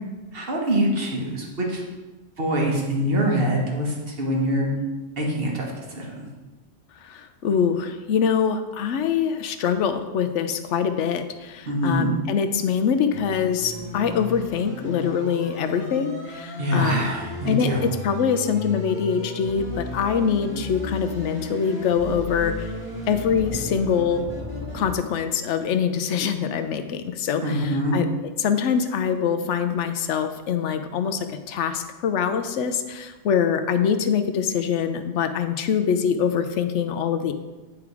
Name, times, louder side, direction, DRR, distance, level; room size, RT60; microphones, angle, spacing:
voice 1, 0.3-1.8 2.4-4.7 5.2-6.3 11.6-12.1 16.6-17.8 27.4-28.0, equal, 50° right, -1 dB, 1.6 m, -24 dB
voice 2, 7.1-17.1 17.4-22.7 23.1-24.2 24.7-28.1 28.4-37.3, left 7 dB, 75° left, 9 dB, 0.9 m, -24 dB
sound 1, 13.1-24.9, left 2 dB, 10° left, 2.0 m, -35 dB
9.9 x 3.6 x 4.7 m, 1.2 s
omnidirectional pair, 1.3 m